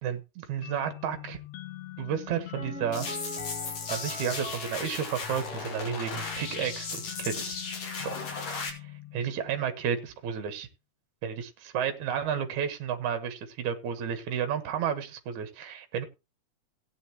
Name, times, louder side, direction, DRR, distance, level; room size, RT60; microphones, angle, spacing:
voice 1, 0.0-1.4 2.0-3.1 3.9-7.6 8.0-8.1 9.1-10.7 11.2-16.1, right 8 dB, 65° right, 8 dB, 2.8 m, -32 dB
sound 1, 0.6-10.0, left 16 dB, 70° left, 1.8 m, -44 dB
Piano, 2.6-6.3 6.6-6.7, left 1 dB, ahead, 4.3 m, -43 dB
sound 2, 2.9-8.7, left 4 dB, 55° left, 3.5 m, -36 dB
16.5 x 9.0 x 3.0 m, 0.27 s
omnidirectional pair, 3.8 m